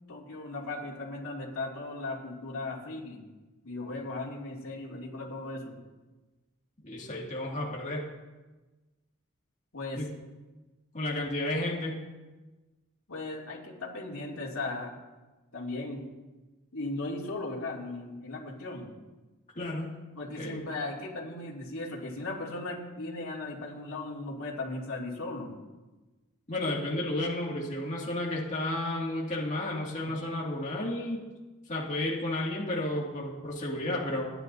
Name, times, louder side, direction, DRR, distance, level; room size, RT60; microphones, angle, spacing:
voice 1, 0.1-3.2 3.6-5.7 9.7-10.0 13.1-14.9 15.5-16.0 16.7-18.9 20.1-25.5, left 2 dB, 85° left, -3 dB, 2.8 m, -37 dB
voice 2, 6.8-8.1 10.0-10.1 10.9-12.0 19.6-19.9 20.4-20.6 26.5-31.3 31.7-34.3, left 1 dB, 35° left, -3 dB, 2.3 m, -32 dB
27.0 x 10.5 x 2.7 m, 1.2 s
head